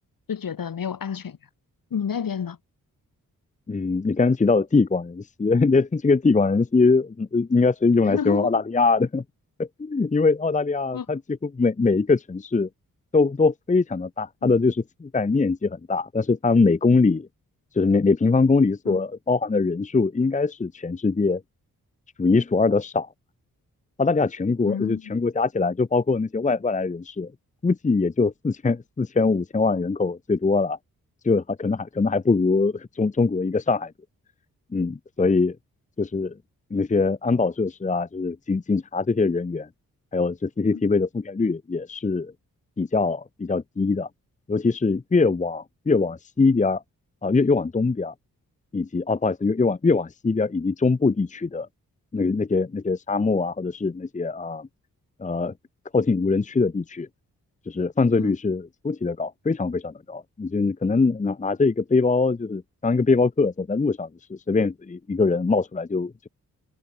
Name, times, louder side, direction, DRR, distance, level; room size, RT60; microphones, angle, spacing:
voice 1, 0.3-1.4 1.9-2.6 8.0-8.5 10.9-11.1 14.4-14.5 18.8-19.0 24.7-25.2 40.7-40.8 58.1-58.3, left 7 dB, 70° left, 6.2 m, -30 dB
voice 2, 3.7-9.2 9.6-12.7 13.1-17.3 17.7-21.4 22.2-23.1 24.0-27.3 27.6-30.8 31.2-33.9 34.7-35.6 36.0-36.4 36.7-39.7 40.1-42.3 42.8-44.1 44.5-46.8 47.2-48.1 48.7-51.7 52.1-54.7 55.2-55.5 55.9-57.1 57.7-66.3, left 4 dB, 20° left, 0.8 m, -22 dB
supercardioid pair, 45°, 35 cm